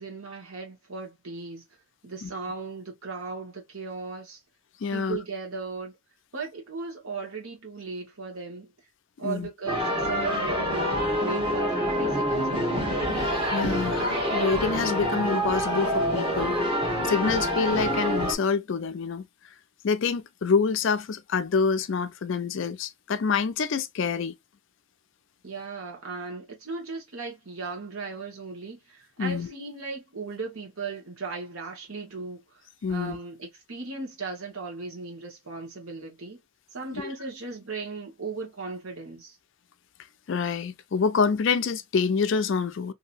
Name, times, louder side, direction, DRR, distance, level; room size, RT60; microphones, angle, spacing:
voice 1, 0.0-1.6 2.0-4.4 4.9-5.9 6.3-8.7 9.2-12.9 25.4-32.4 32.9-36.4 36.7-39.4, right 4 dB, 70° right, 1.2 m, -37 dB
voice 2, 4.8-5.2 9.2-9.5 13.1-16.6 17.0-19.3 19.8-24.3 29.2-29.5 32.8-33.2 36.9-37.1 40.3-42.9, left 5 dB, 55° left, 0.4 m, -27 dB
sound 1, 9.7-18.3, equal, 20° right, 1.1 m, -26 dB
2.9 x 2.6 x 2.5 m
head